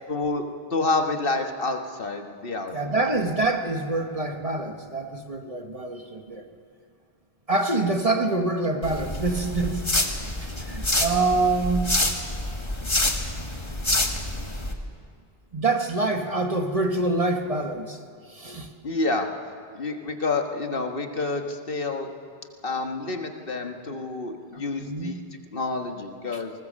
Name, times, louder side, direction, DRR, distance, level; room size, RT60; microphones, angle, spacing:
voice 1, 0.1-0.4 0.7-3.1 18.8-19.3 19.7-22.1 22.6-25.2 25.5-26.5, left 3 dB, 60° left, 5 dB, 1.6 m, -28 dB
voice 2, 2.7-6.5 7.5-9.8 10.4-11.9 15.5-18.0 18.3-18.7 24.8-25.2, right 3 dB, 35° right, 5 dB, 1.3 m, -26 dB
sound 1, 8.8-14.7, left 1 dB, 25° left, 1.6 m, -27 dB
20.0 x 19.0 x 7.4 m, 2.1 s
omnidirectional pair, 1.1 m